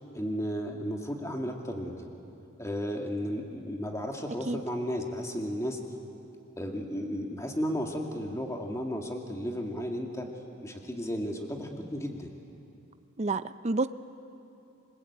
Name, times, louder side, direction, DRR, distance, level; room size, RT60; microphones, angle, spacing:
voice 1, 0.1-2.1 2.6-5.8 6.6-10.3 10.6-12.3, equal, 15° left, 2 dB, 2.2 m, -34 dB
voice 2, 13.2-13.9, right 3 dB, 30° right, 12 dB, 0.5 m, -29 dB
29.0 x 21.5 x 8.7 m, 2.7 s
head